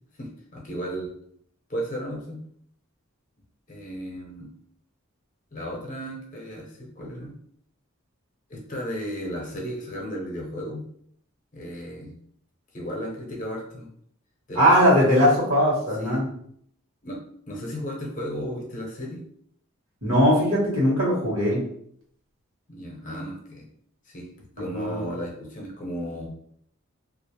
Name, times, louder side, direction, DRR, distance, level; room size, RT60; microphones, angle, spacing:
voice 1, 0.2-1.1 1.7-2.4 3.7-4.5 5.5-7.3 8.5-10.8 11.5-12.2 12.7-13.9 14.5-14.7 15.0-15.1 16.0-16.2 17.0-17.2 17.5-19.3 22.7-23.7 24.0-26.3, equal, 35° left, -2 dB, 0.6 m, -34 dB
voice 2, 14.5-16.3 20.0-21.6 24.7-25.0, equal, 70° right, -5 dB, 1.1 m, -20 dB
2.4 x 2.0 x 2.8 m, 0.65 s
head